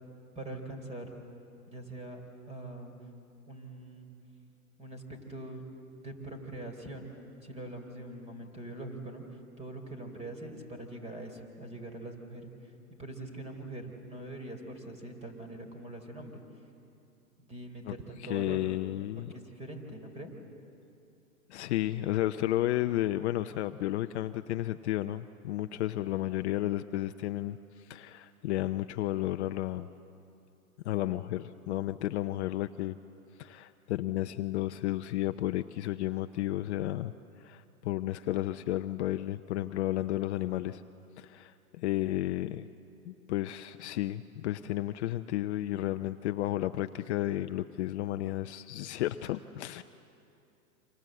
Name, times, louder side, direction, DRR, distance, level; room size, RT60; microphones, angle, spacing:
voice 1, 0.4-1.1 1.7-2.2 2.5-2.9 3.5-4.1 4.8-5.6 6.0-7.1 7.4-12.7 13.0-16.4 17.4-18.7 19.2-20.4, right 1 dB, 15° right, 5 dB, 3.9 m, -43 dB
voice 2, 18.2-19.3 21.5-29.9 30.8-33.0 33.4-37.1 37.4-40.8 41.2-42.7 43.1-49.8, left 14 dB, 50° left, 9 dB, 0.7 m, -32 dB
28.5 x 26.0 x 7.8 m, 2.7 s
hypercardioid pair, 125°, 45 cm